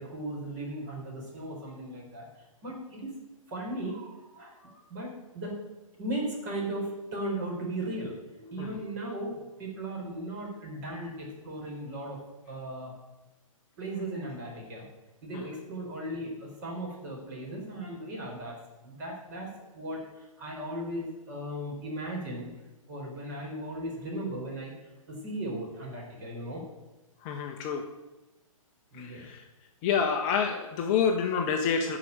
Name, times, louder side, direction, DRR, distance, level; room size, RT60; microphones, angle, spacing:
voice 1, 0.0-2.3 2.6-3.2 3.5-5.6 6.0-12.9 13.8-14.9 15.2-18.6 18.8-22.5 22.9-24.7 25.1-26.6 28.9-29.3, right 1 dB, 35° right, -1 dB, 4.6 m, -37 dB
voice 2, 27.2-27.9 28.9-29.5 29.8-32.0, left 6 dB, 25° left, 3 dB, 0.9 m, -28 dB
14.0 x 5.1 x 9.0 m, 1.1 s
figure-of-eight pair, 125°, 18 cm